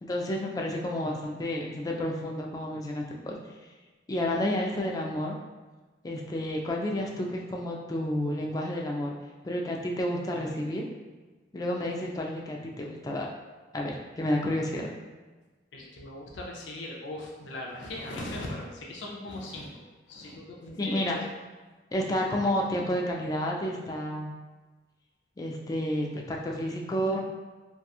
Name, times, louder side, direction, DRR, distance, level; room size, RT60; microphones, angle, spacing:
voice 1, 0.0-3.4 4.1-5.4 6.0-9.1 9.4-10.9 11.5-13.3 13.7-14.9 20.8-21.2 21.9-24.3 25.4-27.2, left 1 dB, 20° left, -1 dB, 0.3 m, -30 dB
voice 2, 15.7-21.2, left 1 dB, 85° left, -2 dB, 0.4 m, -39 dB
2.8 x 2.2 x 2.3 m, 1.3 s
head